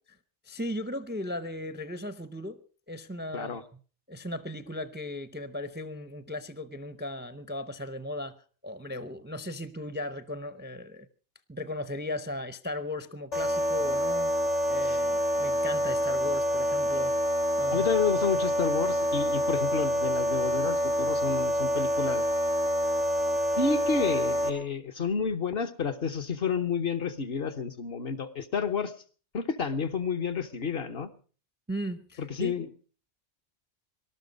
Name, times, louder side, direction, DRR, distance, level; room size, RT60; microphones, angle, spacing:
voice 1, 0.4-2.6 2.9-3.6 4.1-8.4 8.6-11.1 11.5-14.3 14.7-17.1 17.6-17.9 31.7-32.5, left 1 dB, 10° right, 13 dB, 0.6 m, -37 dB
sound 1, 13.3-24.5, equal, 90° left, 2.4 m, -27 dB
voice 2, 17.7-22.2 23.6-28.9 29.3-31.1 32.2-32.7, left 6 dB, 55° left, 7 dB, 1.2 m, -30 dB
19.0 x 12.5 x 5.3 m, 0.40 s
omnidirectional pair, 1.2 m